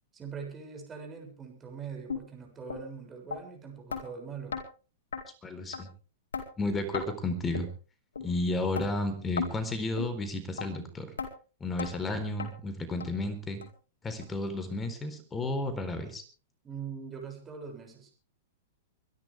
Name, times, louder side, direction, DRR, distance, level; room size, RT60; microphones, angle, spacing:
voice 1, 0.1-4.6 16.6-18.1, right 6 dB, 20° right, 2 dB, 7.0 m, -42 dB
sound 1, 2.1-2.2 2.7-2.8 3.3-3.4 3.9-4.0 4.5-4.6 5.1-5.2 5.7-5.8 6.3-6.5 6.9-7.1 7.5-7.7 8.2-8.3 8.7-8.9 9.4-9.5 10.0-10.1 10.6-10.7 11.2-11.3 11.8-11.9 12.4-12.5 13.0-13.1 13.6-13.7 14.2-14.3 14.8-14.9, left 5 dB, 85° left, 4.1 m, -34 dB
voice 2, 5.4-5.9 6.6-7.7 8.2-11.1 11.6-13.6 14.0-16.2, left 2 dB, 15° left, 8 dB, 4.1 m, -32 dB
25.0 x 12.5 x 3.6 m, 0.36 s
hypercardioid pair, 120°, 0 cm